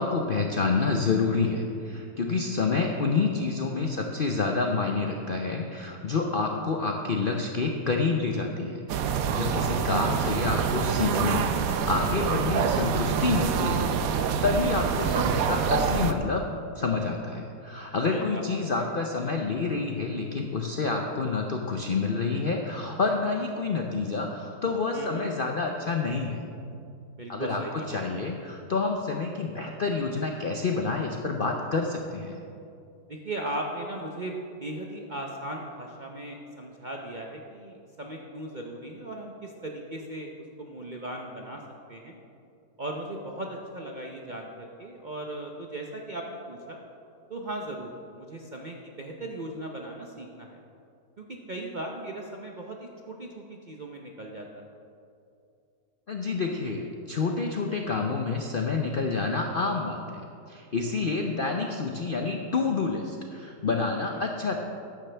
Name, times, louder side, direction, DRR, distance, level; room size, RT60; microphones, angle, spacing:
voice 1, 0.0-8.8 9.3-16.4 16.8-26.4 27.3-32.4 56.1-60.2 60.5-64.5, left 4 dB, 60° left, 2 dB, 0.5 m, -28 dB
voice 2, 3.8-4.1 9.3-9.6 10.0-10.6 18.1-18.8 24.9-25.3 27.2-28.2 33.1-40.3 40.6-41.6 41.9-42.2 42.8-46.8 47.3-50.6 51.2-54.6 64.0-64.3, right 1 dB, 45° right, 0 dB, 0.6 m, -38 dB
sound 1, 8.9-16.1, right 6 dB, 70° right, 1.0 m, -26 dB
13.5 x 9.9 x 3.4 m, 2.5 s
omnidirectional pair, 1.7 m